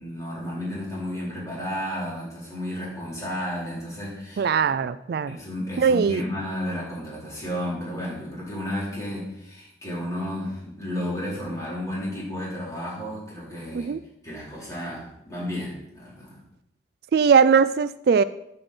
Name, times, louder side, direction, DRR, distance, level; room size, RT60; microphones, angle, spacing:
voice 1, 0.0-4.6 5.2-13.9 14.2-16.4, left 1 dB, 20° left, -6 dB, 4.3 m, -32 dB
voice 2, 4.4-5.4 5.8-6.2 13.7-14.0 17.1-18.2, right 6 dB, 60° right, 15 dB, 0.3 m, -20 dB
8.6 x 5.4 x 7.1 m, 0.80 s
head